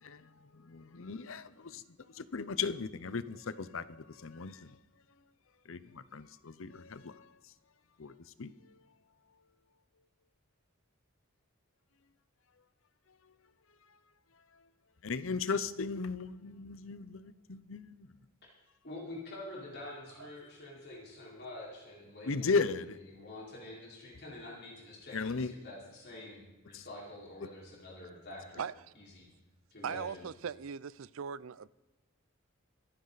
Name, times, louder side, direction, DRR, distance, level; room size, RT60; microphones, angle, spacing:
voice 1, 0.0-4.8 5.6-7.5 8.0-8.9 14.5-14.6 15.0-18.1 22.2-23.0 25.1-25.5 26.7-26.8, left 4 dB, 65° left, 0.7 m, -37 dB
voice 2, 18.8-22.5 23.1-28.6 28.9-29.3 29.7-30.3, left 2 dB, 50° left, 4.7 m, -47 dB
voice 3, 29.8-31.7, right 7 dB, 70° right, 0.5 m, -39 dB
25.5 x 9.5 x 4.1 m
head